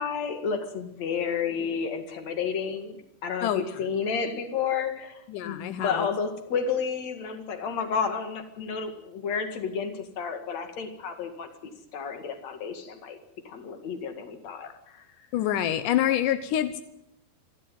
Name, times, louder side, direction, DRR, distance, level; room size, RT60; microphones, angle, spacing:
voice 1, 0.0-13.2 13.4-15.0, left 6 dB, 50° left, 7 dB, 2.8 m, -31 dB
voice 2, 5.3-6.1 15.3-16.8, left 11 dB, 80° left, 11 dB, 1.9 m, -26 dB
27.5 x 12.5 x 9.3 m, 0.81 s
omnidirectional pair, 4.9 m